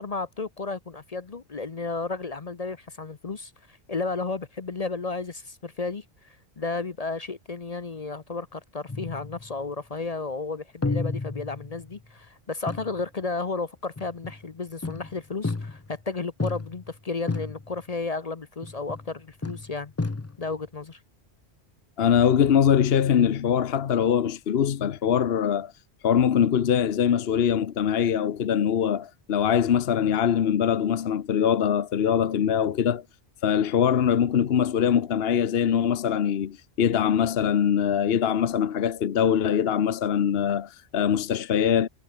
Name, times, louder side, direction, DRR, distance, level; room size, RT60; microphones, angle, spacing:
voice 1, 0.0-19.9 20.4-21.0, left 3 dB, 40° left, 0.9 m, -33 dB
sound 1, 8.9-9.7 10.8-12.0 12.7-13.0 14.0-14.4 14.8-16.0 16.4-17.0 17.3-17.8 18.6-19.1 19.4-20.6, left 3 dB, 20° left, 0.5 m, -32 dB
voice 2, 22.0-25.7 26.0-33.0 33.4-41.9, left 8 dB, 65° left, 1.1 m, -23 dB
omnidirectional pair, 1.1 m